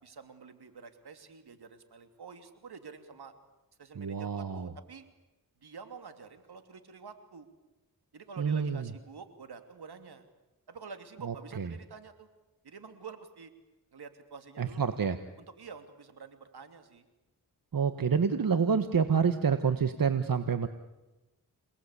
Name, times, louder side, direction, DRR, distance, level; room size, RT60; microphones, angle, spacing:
voice 1, 0.0-3.3 3.8-5.0 5.6-7.5 8.1-10.2 10.7-12.3 12.6-13.5 13.9-14.8 15.4-17.0, right 5 dB, 80° right, 8 dB, 2.9 m, -48 dB
voice 2, 3.9-4.7 8.4-8.9 11.2-11.7 14.6-15.2 17.7-20.7, right 6 dB, 60° right, 9 dB, 1.5 m, -28 dB
28.5 x 19.5 x 8.4 m, 1.0 s
cardioid pair, 50°, 39 cm